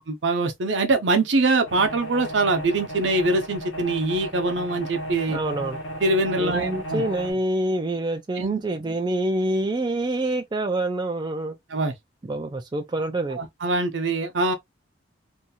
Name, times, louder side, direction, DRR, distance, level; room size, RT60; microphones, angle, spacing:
voice 1, 0.2-5.4 6.0-7.0 8.4-8.6 11.7-11.9 13.4-14.5, right 2 dB, 70° right, 0.7 m, -23 dB
sound 1, 1.7-7.3, right 1 dB, 85° left, 1.1 m, -35 dB
voice 2, 5.3-5.8 6.4-11.6 12.2-13.4, right 1 dB, 20° right, 0.3 m, -26 dB
2.7 x 2.3 x 2.7 m
head